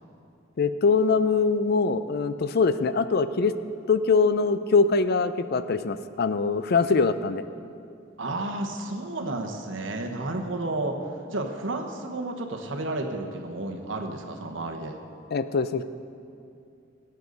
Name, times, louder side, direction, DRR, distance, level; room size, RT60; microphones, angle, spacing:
voice 1, 0.6-3.5 3.9-7.4 15.3-15.8, left 4 dB, 55° left, 12 dB, 0.4 m, -23 dB
voice 2, 8.2-11.0 11.3-15.0, right 2 dB, 80° right, 3 dB, 1.1 m, -31 dB
18.0 x 8.1 x 4.0 m, 2.5 s
head